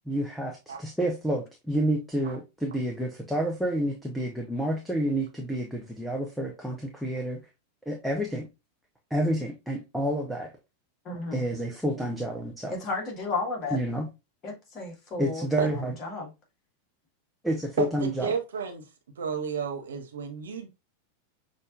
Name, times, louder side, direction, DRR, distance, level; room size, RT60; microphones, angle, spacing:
voice 1, 0.1-7.4 7.9-8.5 9.1-10.5 11.3-12.8 13.7-14.1 15.2-15.9 17.4-18.3, right 1 dB, ahead, 0.7 m, -29 dB
voice 2, 11.1-11.4 12.7-13.8 14.4-15.5 16.0-16.3, left 3 dB, 35° left, 1.6 m, -33 dB
voice 3, 17.8-18.8 19.2-20.7, right 6 dB, 65° right, 0.9 m, -31 dB
6.2 x 2.6 x 2.4 m
figure-of-eight pair, 90°, 0 cm